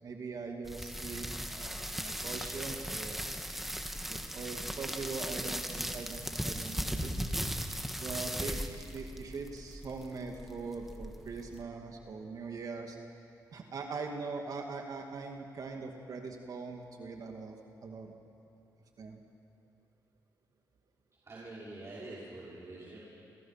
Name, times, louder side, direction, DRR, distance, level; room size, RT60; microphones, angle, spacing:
voice 1, 0.0-3.2 4.1-7.1 8.0-13.0 13.5-18.1 19.0-19.2, right 4 dB, 55° right, 2 dB, 2.3 m, -42 dB
sound 1, 0.6-11.6, equal, 5° right, 1.6 m, -38 dB
voice 2, 21.2-23.0, right 2 dB, 40° right, -7 dB, 5.7 m, -46 dB
28.0 x 27.0 x 5.9 m, 2.7 s
cardioid pair, 85°, 7 cm